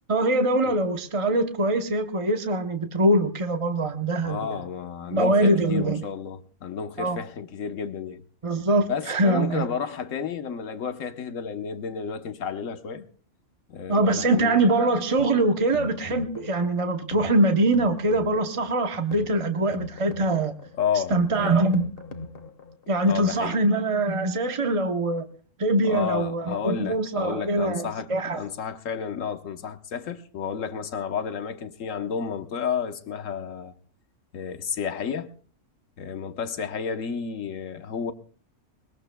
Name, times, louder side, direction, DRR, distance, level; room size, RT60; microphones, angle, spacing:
voice 1, 0.1-4.6 5.1-6.0 7.0-7.2 8.4-9.7 13.9-20.5 21.1-21.9 22.9-25.3 25.6-28.4, right 2 dB, 30° right, 0.8 m, -23 dB
voice 2, 4.2-8.2 8.9-13.1 13.7-14.6 20.8-21.6 23.0-23.6 25.8-33.8 34.3-35.3 36.0-38.1, left 6 dB, 80° left, 1.3 m, -31 dB
sound 1, 14.9-22.9, left 2 dB, 50° left, 1.5 m, -40 dB
21.5 x 20.5 x 2.2 m
omnidirectional pair, 1.3 m